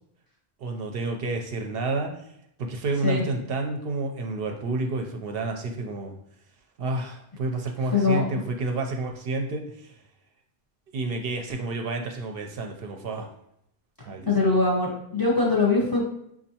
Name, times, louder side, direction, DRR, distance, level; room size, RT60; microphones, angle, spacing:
voice 1, 0.6-2.2 2.6-6.2 6.8-10.0 10.9-13.3 14.1-14.5, right 2 dB, 70° right, 3 dB, 0.7 m, -30 dB
voice 2, 14.3-16.0, left 3 dB, 25° left, -4 dB, 0.7 m, -22 dB
5.2 x 2.5 x 2.8 m, 0.74 s
omnidirectional pair, 1.1 m